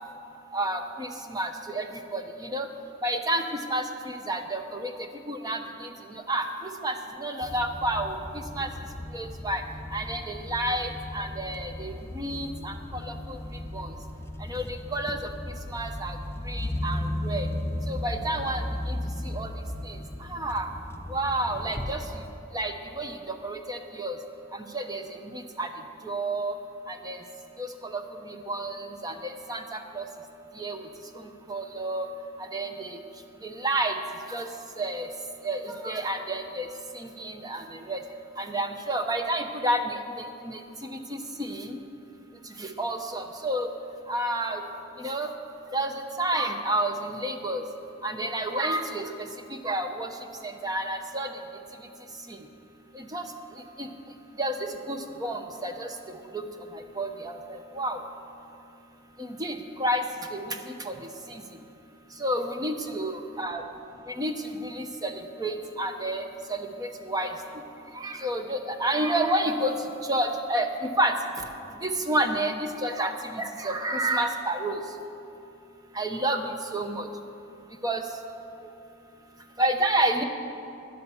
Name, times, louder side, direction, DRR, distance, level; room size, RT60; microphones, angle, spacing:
voice 1, 0.5-1.9 2.1-2.7 3.0-3.4 3.7-4.9 5.3-5.9 6.3-6.5 6.8-8.2 8.5-8.7 9.1-9.6 9.9-13.4 13.7-13.9 14.5-14.7 14.9-15.2 15.7-16.2 16.5-17.5 17.9-18.9 19.3-19.5 19.9-20.0 20.3-20.7 21.1-22.0 22.5-24.2 24.7-25.0 25.3-25.7 26.0-26.5 26.9-27.2 27.6-28.0 28.3-30.0 30.6-30.8 31.5-32.1 32.5-33.0 33.4-34.0 34.3-34.5 34.8-35.1 35.4-36.7 36.9-38.0 38.4-40.6 41.1-41.8 42.6-43.7 44.1-44.6 45.0-45.3 45.7-47.6 48.0-49.1 49.6-50.1 50.4-51.3 52.9-53.2 53.8-53.9 54.4-54.5 54.9-55.9 56.3-56.4 57.0-58.0 59.2-60.0 60.3-60.9 62.2-63.6 64.1-64.3 64.6-67.3 68.0-69.7 70.0-71.1 71.8-72.6 72.8-74.7 76.0-77.1 77.8-78.0 79.6-80.2, right 1 dB, 20° right, 5 dB, 0.8 m, -30 dB
sound 1, 7.4-22.3, left 1 dB, 10° left, 0.5 m, -36 dB
12.5 x 10.0 x 7.1 m, 2.8 s
head